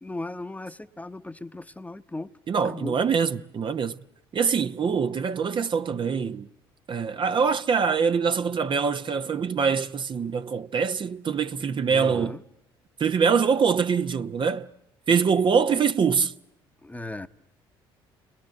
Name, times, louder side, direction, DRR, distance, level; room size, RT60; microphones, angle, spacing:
voice 1, 0.0-2.3 2.6-2.9 11.9-12.4 16.8-17.3, left 2 dB, 10° left, 1.0 m, -37 dB
voice 2, 2.5-4.0 4.3-6.5 6.9-12.4 13.0-14.7 15.1-16.3, right 6 dB, 40° right, 0.9 m, -24 dB
29.5 x 21.5 x 7.8 m
hypercardioid pair, 55°, 12 cm